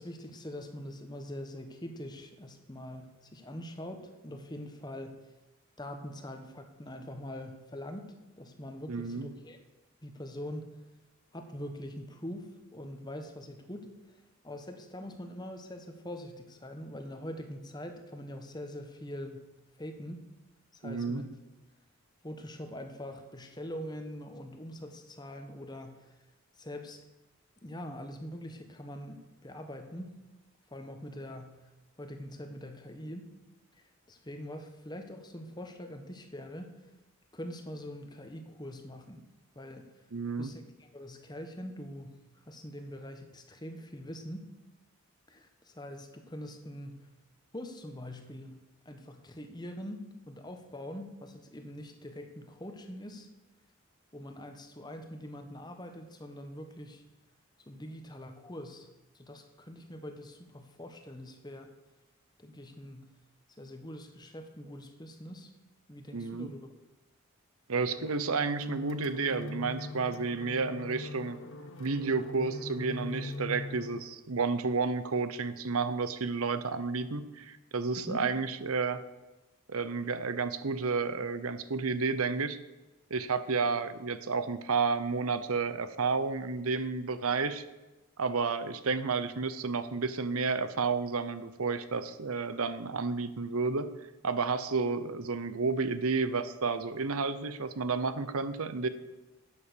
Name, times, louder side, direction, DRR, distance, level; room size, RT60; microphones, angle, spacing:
voice 1, 0.0-5.3 5.8-9.6 10.0-10.8 11.3-19.5 19.8-20.2 20.7-21.4 22.2-26.1 26.6-27.0 27.6-30.1 30.7-31.6 32.0-33.3 33.8-36.7 37.3-39.2 39.5-39.9 40.4-42.2 42.5-44.5 45.3-47.1 47.5-53.3 54.1-57.0 57.6-58.9 59.1-61.7 62.4-63.1 63.6-65.5 65.9-66.7 78.0-78.2, left 1 dB, 20° left, 6 dB, 1.1 m, -43 dB
voice 2, 8.9-9.3 20.8-21.2 40.1-40.5 66.1-66.5 67.7-71.4 71.8-79.0 79.7-82.6 83.1-87.6 88.2-93.9 94.2-98.9, right 4 dB, 75° right, 12 dB, 0.8 m, -31 dB
sound 1, 67.7-74.0, left 2 dB, 65° left, 1.3 m, -41 dB
11.5 x 8.6 x 6.8 m, 1.1 s
head